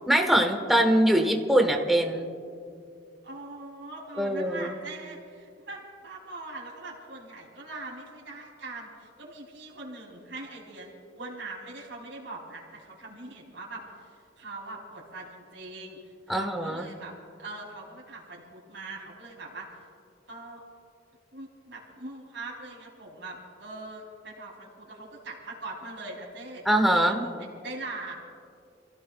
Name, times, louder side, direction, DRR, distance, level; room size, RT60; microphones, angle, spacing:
voice 1, 0.1-2.3 4.2-4.7 16.3-16.9 26.6-27.2, right 1 dB, ahead, 3 dB, 1.2 m, -23 dB
voice 2, 3.2-14.1 14.4-16.0 16.3-17.1 17.4-19.7 20.3-20.6 21.3-26.6 26.9-28.1, right 2 dB, 75° right, -2 dB, 3.2 m, -41 dB
29.0 x 15.5 x 2.4 m, 2.3 s
head